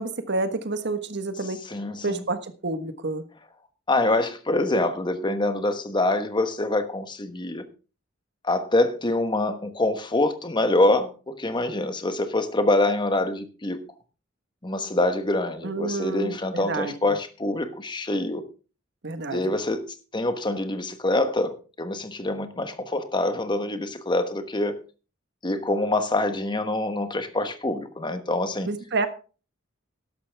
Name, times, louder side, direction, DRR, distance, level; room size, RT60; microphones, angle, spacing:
voice 1, 0.0-1.6 2.0-3.3 15.6-17.1 19.0-19.5 28.7-29.1, right 3 dB, 60° right, 1.4 m, -29 dB
voice 2, 1.7-2.2 3.9-7.7 8.4-13.8 14.6-18.5 19.3-19.9 20.1-24.8 25.4-28.7, left 2 dB, 25° left, 1.2 m, -25 dB
12.5 x 11.5 x 3.5 m
head